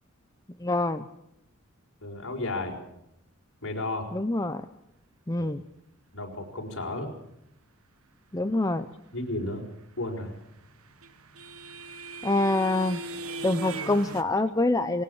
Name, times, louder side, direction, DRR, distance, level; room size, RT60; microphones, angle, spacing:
voice 1, 0.6-1.0 4.1-4.6 5.3-5.6 8.3-8.9 12.2-13.0 13.4-15.0, left 2 dB, 15° left, 8 dB, 0.8 m, -25 dB
voice 2, 2.0-2.8 3.6-4.1 5.4-5.5 6.1-7.1 9.1-9.6 10.0-10.4, left 2 dB, 60° left, 1 dB, 5.5 m, -33 dB
sound 1, 10.4-14.2, right 2 dB, 70° right, 1.4 m, -38 dB
20.5 x 18.5 x 7.3 m, 0.81 s
head